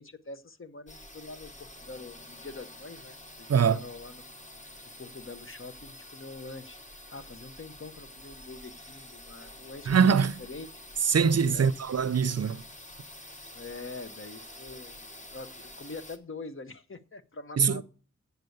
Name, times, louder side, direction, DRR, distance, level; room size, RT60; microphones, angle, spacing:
voice 1, 0.0-4.3 5.0-6.8 7.1-10.7 11.5-11.7 13.5-17.8, left 3 dB, 45° left, 0.9 m, -44 dB
sound 1, 0.9-16.2, left 1 dB, 25° left, 1.3 m, -48 dB
voice 2, 3.5-3.8 9.9-10.4 11.0-12.6 17.6-17.8, right 6 dB, 60° right, 0.6 m, -23 dB
8.1 x 6.7 x 7.9 m
wide cardioid pair, 70°, 29 cm